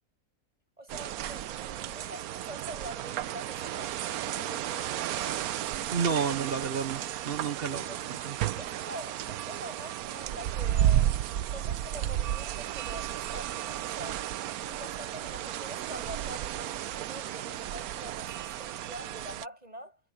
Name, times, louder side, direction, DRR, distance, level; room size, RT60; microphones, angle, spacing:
voice 1, 0.8-5.7 7.6-8.0 8.6-11.1 11.5-14.2 14.5-20.0, right 1 dB, 25° right, 7.5 m, -45 dB
sound 1, 0.9-19.5, right 12 dB, 80° right, 1.1 m, -33 dB
voice 2, 5.9-8.4, right 6 dB, 45° right, 0.9 m, -31 dB
omnidirectional pair, 1.6 m